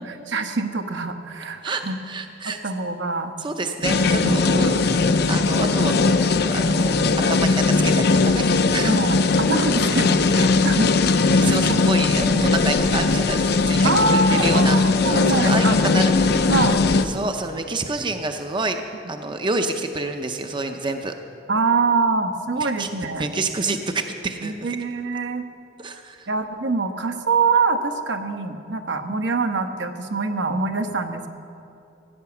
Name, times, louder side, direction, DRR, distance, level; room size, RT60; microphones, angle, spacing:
voice 1, 0.3-2.0 2.4-3.3 4.0-4.6 8.8-11.2 11.7-11.9 12.3-12.5 13.8-15.8 16.5-16.8 21.5-23.3 24.4-25.4 26.3-31.3, right 3 dB, 70° right, 6 dB, 1.0 m, -24 dB
voice 2, 1.6-2.6 3.4-4.9 5.3-7.0 7.3-9.0 11.3-14.8 15.1-16.5 17.0-18.8 19.1-21.1 22.6-22.9 23.2-24.8 25.8-26.3, right 3 dB, 25° right, 6 dB, 0.6 m, -28 dB
sound 1, 3.8-17.1, left 3 dB, 60° left, 0.6 m, -19 dB
16.0 x 9.4 x 7.0 m, 2.7 s
head